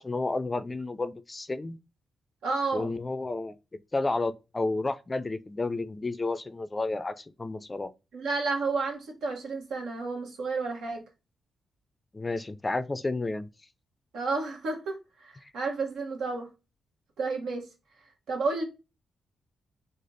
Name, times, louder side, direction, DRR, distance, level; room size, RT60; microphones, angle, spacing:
voice 1, 0.0-1.8 2.7-3.5 3.9-7.9 12.1-13.5, left 2 dB, 30° left, 0.4 m, -31 dB
voice 2, 2.4-2.9 8.1-11.0 14.1-16.5 17.2-17.6 18.3-18.6, right 3 dB, 80° right, 0.9 m, -31 dB
3.3 x 2.0 x 3.8 m
supercardioid pair, 50°, 0 cm